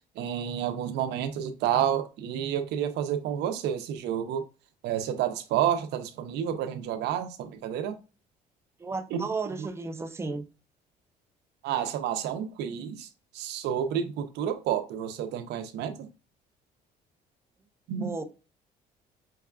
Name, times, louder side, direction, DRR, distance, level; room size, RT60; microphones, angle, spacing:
voice 1, 0.2-4.4 4.8-8.0 9.1-9.2 11.6-13.1 13.3-16.1 17.9-18.1, right 9 dB, 80° right, 0.6 m, -30 dB
voice 2, 8.8-10.5 17.9-18.2, right 4 dB, 15° right, 0.4 m, -34 dB
5.4 x 2.3 x 2.3 m
cardioid pair, 110°, 17 cm